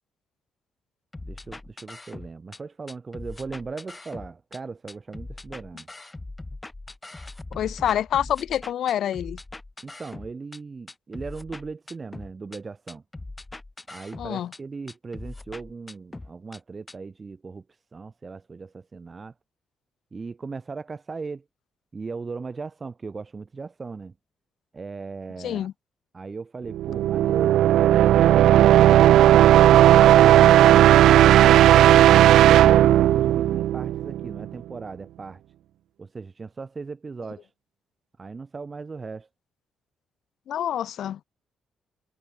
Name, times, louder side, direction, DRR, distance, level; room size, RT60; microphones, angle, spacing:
sound 1, 1.1-2.6 2.9-4.6 4.9-10.6 10.9-12.6 12.9-14.6 14.9-16.6 16.9-17.0, left 2 dB, 10° left, 1.1 m, -41 dB
voice 1, 1.2-5.9 9.8-13.0 13.9-19.3 20.1-21.4 21.9-24.1 24.7-25.7 26.1-29.5 32.5-35.4 36.0-37.5 38.2-39.3, right 4 dB, 25° right, 3.4 m, -38 dB
voice 2, 7.5-9.4 14.2-14.5 25.4-25.7 40.5-41.2, left 10 dB, 65° left, 0.8 m, -27 dB
sound 2, 26.7-34.4, right 12 dB, 85° right, 0.4 m, -15 dB
cardioid pair, 155°, 0 cm